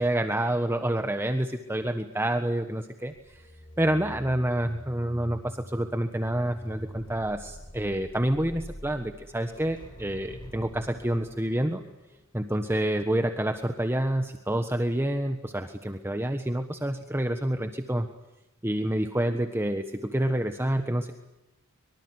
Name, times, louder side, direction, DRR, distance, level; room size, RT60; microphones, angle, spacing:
voice 1, 0.0-3.5 3.8-11.8 12.3-18.1 18.6-21.1, right 1 dB, 10° right, 6 dB, 1.4 m, -28 dB
sound 1, 3.1-13.4 13.8-14.0, equal, 20° left, 6.0 m, -46 dB
24.5 x 24.0 x 9.6 m, 0.93 s
head